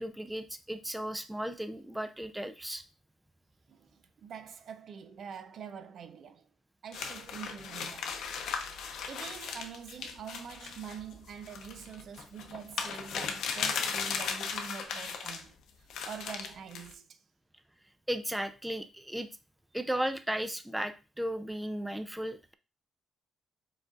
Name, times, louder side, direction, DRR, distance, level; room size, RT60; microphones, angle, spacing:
voice 1, 0.0-2.8 18.1-19.3 19.7-22.5, right 1 dB, 5° right, 0.5 m, -35 dB
voice 2, 4.2-6.4 6.8-8.2 9.1-17.2, right 7 dB, 60° right, 0.5 m, -45 dB
sound 1, 6.9-15.4 15.9-16.9, left 6 dB, 75° left, 0.6 m, -37 dB
4.8 x 4.0 x 2.4 m
cardioid pair, 90°, 0 cm